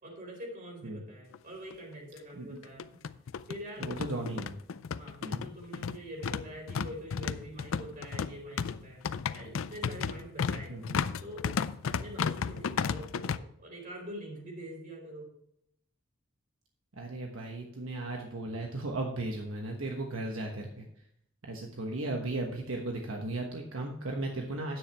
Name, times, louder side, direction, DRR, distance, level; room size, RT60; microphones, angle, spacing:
voice 1, 0.0-3.0 3.5-3.9 4.9-9.0 9.3-10.8 11.2-11.5 11.8-15.3, equal, 45° right, -1 dB, 4.5 m, -45 dB
sound 1, 1.3-1.4 1.7-1.8 2.6-13.4, left 6 dB, 80° left, 0.4 m, -33 dB
voice 2, 3.8-4.5 5.2-5.5 10.7-11.0 16.9-20.9 21.5-24.8, right 2 dB, 80° right, 2 dB, 1.2 m, -36 dB
10.0 x 8.9 x 3.4 m, 0.74 s
head